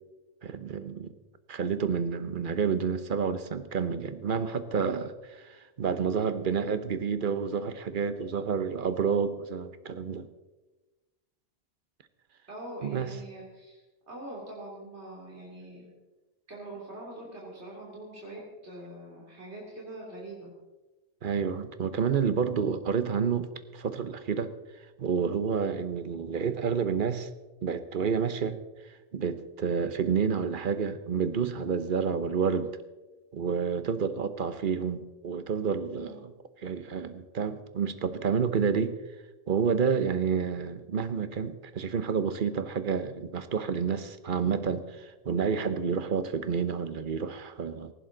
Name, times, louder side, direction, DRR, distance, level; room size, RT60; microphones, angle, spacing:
voice 1, 0.4-1.1 1.5-10.3 12.8-13.1 21.2-24.5 25.0-27.3 27.6-28.6 29.1-32.7 33.3-36.3 36.6-39.0 39.5-47.9, right 6 dB, 50° right, 11 dB, 1.1 m, -29 dB
voice 2, 12.5-15.9 16.5-20.5 36.0-36.2, right 1 dB, 75° right, -4 dB, 3.3 m, -43 dB
18.0 x 15.5 x 3.9 m, 1.2 s
omnidirectional pair, 1.1 m